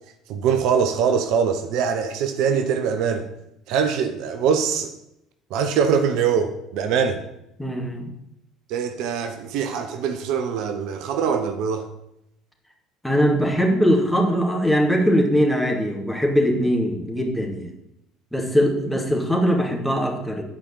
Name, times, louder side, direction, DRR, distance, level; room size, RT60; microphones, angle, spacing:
voice 1, 0.3-3.3 3.7-4.9 5.5-7.2 8.7-11.9, right 6 dB, 60° right, 7 dB, 0.9 m, -23 dB
voice 2, 7.6-8.1 13.0-17.7 18.3-20.4, equal, 5° left, 0 dB, 2.7 m, -21 dB
9.7 x 5.1 x 7.1 m, 0.83 s
hypercardioid pair, 60°, 0 cm